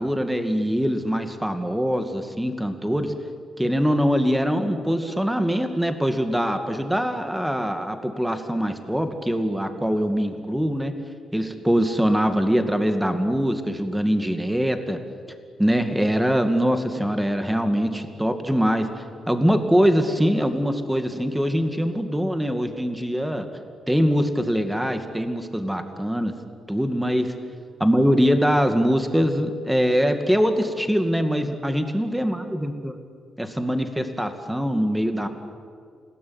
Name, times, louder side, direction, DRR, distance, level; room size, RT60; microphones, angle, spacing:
voice 1, 0.0-3.1 3.6-10.9 11.3-15.0 15.6-18.9 19.3-23.4 23.9-26.3 26.7-27.3 27.8-32.9 33.4-35.3, equal, 5° right, 7 dB, 2.2 m, -23 dB
29.0 x 18.0 x 9.5 m, 2.2 s
cardioid pair, 125°, 0 cm